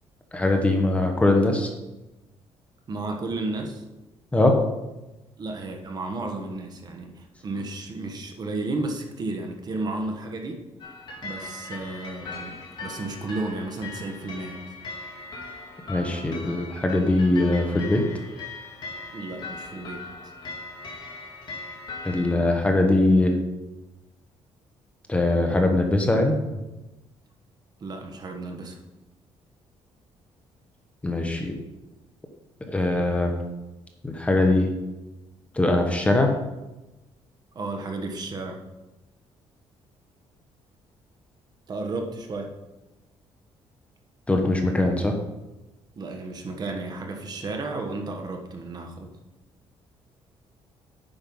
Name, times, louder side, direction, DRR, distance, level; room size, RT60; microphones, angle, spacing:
voice 1, 0.3-1.7 4.3-4.5 15.9-18.0 22.0-23.4 25.1-26.3 31.0-31.5 32.7-33.3 34.0-34.7 35.5-36.3 44.3-45.2, left 2 dB, 10° left, 3 dB, 1.1 m, -21 dB
voice 2, 2.9-3.8 5.4-10.6 11.2-12.5 12.8-14.7 19.1-20.0 27.8-28.8 37.5-38.6 41.7-42.5 46.0-49.1, right 2 dB, 40° right, 3 dB, 1.3 m, -33 dB
sound 1, 10.8-22.4, left 3 dB, 45° left, 2.5 m, -39 dB
9.1 x 5.6 x 5.4 m, 1.0 s
cardioid pair, 140°, 11 cm